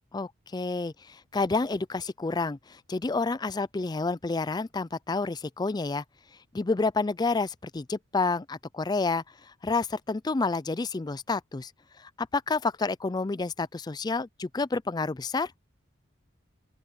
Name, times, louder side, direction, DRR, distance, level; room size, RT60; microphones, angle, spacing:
voice 1, 0.1-6.0 6.5-11.7 12.0-15.5, left 3 dB, 20° left, 0.4 m, -29 dB
open air
head